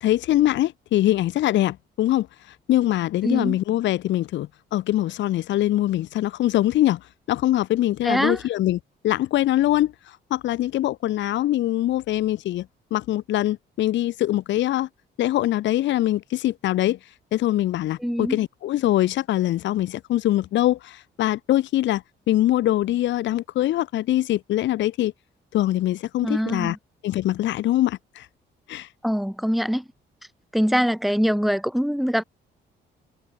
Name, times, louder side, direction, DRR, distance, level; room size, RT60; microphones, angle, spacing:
voice 1, 0.0-2.3 2.7-14.9 15.2-17.0 17.3-25.1 25.5-26.8 27.0-28.3 28.7-28.9, left 14 dB, 70° left, 0.6 m, -23 dB
voice 2, 3.2-3.6 8.0-8.4 18.0-18.4 26.2-26.8 29.0-29.9 30.5-32.2, equal, ahead, 3.4 m, -23 dB
cardioid pair, 90°, 20 cm